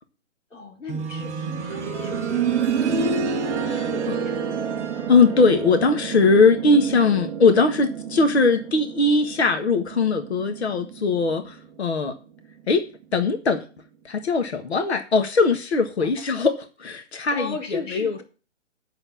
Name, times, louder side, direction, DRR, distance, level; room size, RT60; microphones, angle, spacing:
voice 1, 0.5-3.0 3.6-4.7 16.0-16.1 17.3-18.2, left 4 dB, 85° left, 4.5 m, -37 dB
sound 1, 0.9-11.7 13.0-13.1, right 6 dB, 5° right, 0.7 m, -29 dB
voice 2, 5.1-12.2 12.7-12.9 13.1-13.6 14.1-18.2, left 4 dB, 60° left, 1.7 m, -20 dB
8.9 x 6.7 x 7.4 m
figure-of-eight pair, 145°, 37 cm